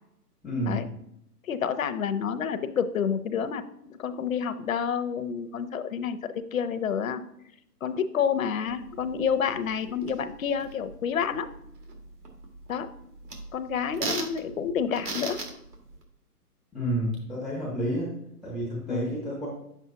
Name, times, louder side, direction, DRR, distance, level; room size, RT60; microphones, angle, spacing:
voice 1, 0.4-0.9 16.7-18.1 18.4-19.5, equal, ahead, -8 dB, 0.4 m, -30 dB
voice 2, 1.5-6.2 6.5-7.2 7.8-11.5 12.7-12.9 13.5-15.4 18.9-19.1, left 7 dB, 60° left, 11 dB, 0.7 m, -29 dB
sound 1, 8.7-16.0, right 3 dB, 75° right, 2.1 m, -39 dB
9.2 x 7.2 x 2.8 m, 0.77 s
hypercardioid pair, 160°, 47 cm